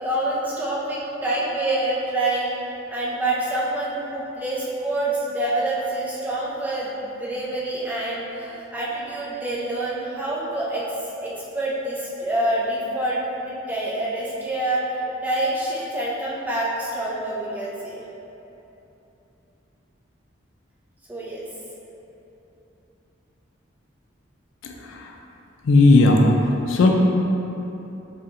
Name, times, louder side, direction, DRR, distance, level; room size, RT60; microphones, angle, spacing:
voice 1, 0.0-2.5 2.9-10.9 11.2-18.0 21.1-21.5, right 1 dB, 10° right, -7 dB, 0.5 m, -26 dB
voice 2, 24.6-25.1 25.6-26.9, left 2 dB, 85° left, 1 dB, 0.4 m, -17 dB
4.2 x 2.8 x 2.5 m, 3.0 s
head